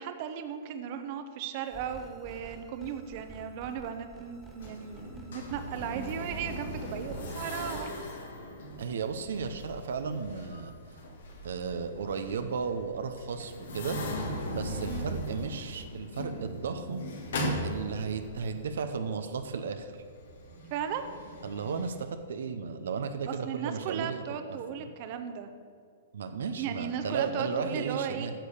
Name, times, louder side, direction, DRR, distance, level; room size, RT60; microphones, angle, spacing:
voice 1, 0.0-8.0 14.9-15.1 20.7-21.0 23.3-25.5 26.6-28.3, right 8 dB, 45° right, 8 dB, 0.8 m, -36 dB
sound 1, 1.6-8.0, right 3 dB, 10° right, 1.7 m, -50 dB
sound 2, 4.6-21.9, equal, 80° left, 2.5 m, -39 dB
voice 2, 8.8-10.7 11.4-14.0 14.5-17.0 17.6-19.9 21.4-24.2 24.5-24.9 26.1-28.3, right 5 dB, 80° right, 8 dB, 0.7 m, -34 dB
10.0 x 6.8 x 6.6 m, 2.3 s
hypercardioid pair, 140°, 0 cm